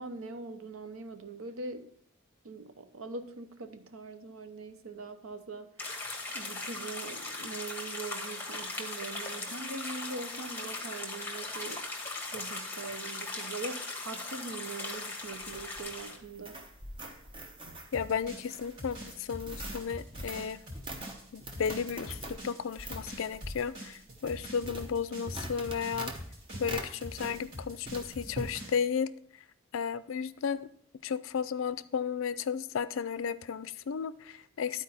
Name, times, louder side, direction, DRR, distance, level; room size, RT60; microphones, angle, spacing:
voice 1, 0.0-1.9 2.4-5.7 6.3-11.9 12.3-16.6, right 3 dB, 85° right, 0.8 m, -42 dB
sound 1, 5.8-16.2, left 3 dB, 10° left, 1.3 m, -39 dB
sound 2, 15.2-27.6 27.9-28.5, right 1 dB, 25° right, 0.9 m, -44 dB
voice 2, 17.9-20.6 21.3-26.1 26.6-29.1 29.7-30.7 31.0-34.8, left 6 dB, 70° left, 0.4 m, -34 dB
sound 3, 17.9-28.8, equal, 60° right, 3.2 m, -45 dB
11.5 x 4.5 x 4.2 m
head